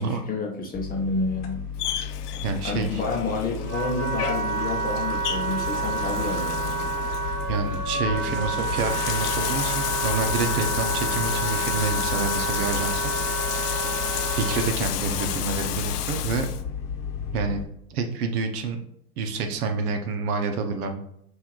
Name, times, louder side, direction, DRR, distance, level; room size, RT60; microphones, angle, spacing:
voice 1, 0.0-1.6 2.6-6.9, left 3 dB, 20° left, 0 dB, 0.7 m, -29 dB
sound 1, 0.7-17.6, left 7 dB, 45° left, 0.9 m, -34 dB
Bathtub (filling or washing), 1.8-16.6, left 11 dB, 75° left, 0.6 m, -32 dB
voice 2, 2.4-3.0 7.5-13.1 13.6-13.9 14.3-16.5 17.3-17.6 17.9-18.8 19.2-21.1, right 4 dB, 65° right, 6 dB, 0.9 m, -28 dB
Wind instrument woodwind instrument, 3.1-14.7, right 4 dB, 20° right, 0.4 m, -30 dB
5.6 x 2.6 x 3.0 m, 0.74 s
hypercardioid pair, 105°, 48 cm